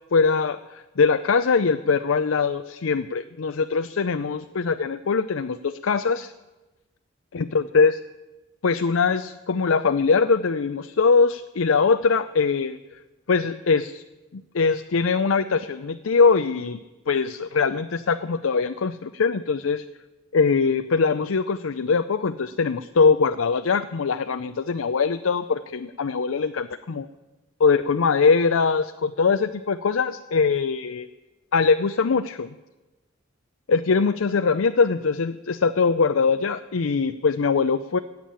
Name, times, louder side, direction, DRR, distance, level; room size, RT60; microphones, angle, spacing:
voice 1, 0.1-6.3 7.3-8.0 8.6-12.8 13.3-14.0 14.3-16.8 17.1-19.8 20.3-27.1 27.6-31.1 31.5-32.5 33.7-38.0, left 5 dB, 85° left, 10 dB, 0.5 m, -22 dB
16.0 x 9.2 x 8.6 m, 1.1 s
head